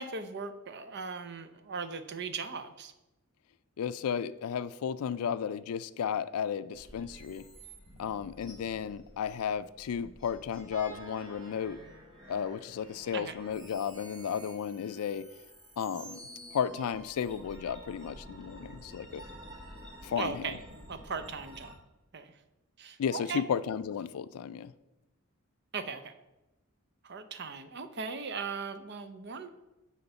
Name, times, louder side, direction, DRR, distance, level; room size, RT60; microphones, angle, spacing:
voice 1, 0.0-2.9 13.1-13.4 20.2-20.6 20.9-21.8 22.1-22.4 22.8-23.4 25.7-26.1 27.0-29.5, right 5 dB, 50° right, 10 dB, 0.6 m, -38 dB
voice 2, 3.8-7.4 8.0-11.8 12.3-15.3 15.8-16.2 16.5-19.2 20.0-20.4 23.0-24.7, left 7 dB, 85° left, 16 dB, 0.4 m, -34 dB
sound 1, 6.7-21.7, right 1 dB, 20° right, 1.5 m, -50 dB
6.8 x 4.5 x 6.8 m, 0.99 s
head